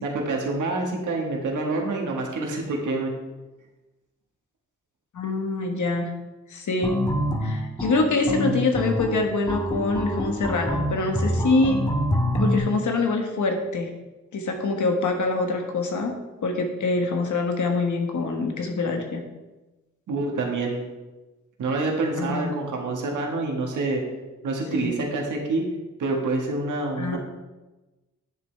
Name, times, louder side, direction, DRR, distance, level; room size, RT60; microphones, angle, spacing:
voice 1, 0.0-3.1 20.1-20.9 21.6-24.0 24.4-25.6 26.0-27.2, right 2 dB, 85° right, 0 dB, 1.6 m, -27 dB
voice 2, 5.1-6.1 6.5-7.0 7.4-11.8 12.3-13.9 14.3-16.1 16.4-19.2 22.2-22.5 24.7-24.9 27.0-27.2, left 3 dB, 75° left, 3 dB, 1.4 m, -25 dB
sound 1, 6.8-12.6, equal, 15° left, 1.5 m, -26 dB
10.0 x 7.0 x 3.4 m, 1.1 s
cardioid pair, 55°, 30 cm